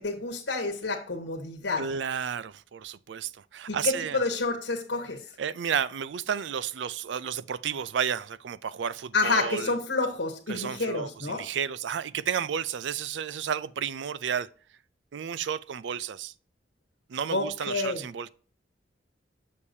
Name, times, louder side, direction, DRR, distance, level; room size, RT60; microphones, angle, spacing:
voice 1, 0.0-1.8 3.7-5.2 9.1-11.4 17.3-18.0, left 3 dB, 80° left, 1.3 m, -29 dB
voice 2, 1.8-4.2 5.4-9.7 10.5-14.5 15.1-16.3 17.1-18.3, right 8 dB, 80° right, 0.4 m, -32 dB
7.2 x 6.5 x 2.7 m
head